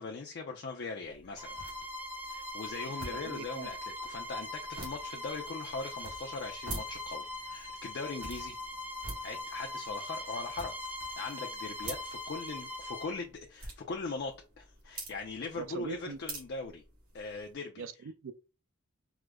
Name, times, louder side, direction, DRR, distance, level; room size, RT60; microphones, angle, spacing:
voice 1, 0.0-1.6 2.3-8.6 9.2-10.7 11.2-16.8 17.1-17.8, left 4 dB, 50° left, 0.4 m, -40 dB
sound 1, 1.0-17.5, right 2 dB, 90° right, 1.5 m, -48 dB
Bowed string instrument, 1.4-13.2, left 2 dB, 10° right, 0.5 m, -41 dB
voice 2, 3.1-3.7 15.6-16.2 17.8-18.3, right 5 dB, 65° right, 0.4 m, -42 dB
4.8 x 2.0 x 2.2 m
head